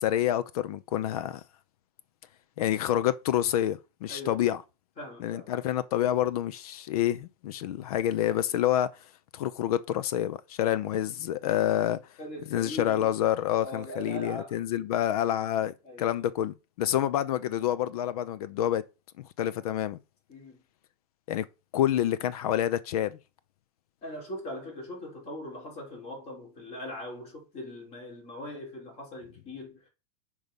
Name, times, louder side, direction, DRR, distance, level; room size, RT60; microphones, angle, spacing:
voice 1, 0.0-1.4 2.6-4.6 5.2-8.9 9.3-12.0 12.5-18.8 19.4-20.0 21.3-21.4 21.7-23.2, left 11 dB, 70° left, 0.6 m, -28 dB
voice 2, 4.1-4.5 5.0-5.5 12.2-13.2 13.6-14.6 15.8-16.3 20.3-20.6 24.0-29.9, left 1 dB, 35° left, 3.4 m, -41 dB
5.4 x 4.8 x 5.2 m
supercardioid pair, 150°, 20 cm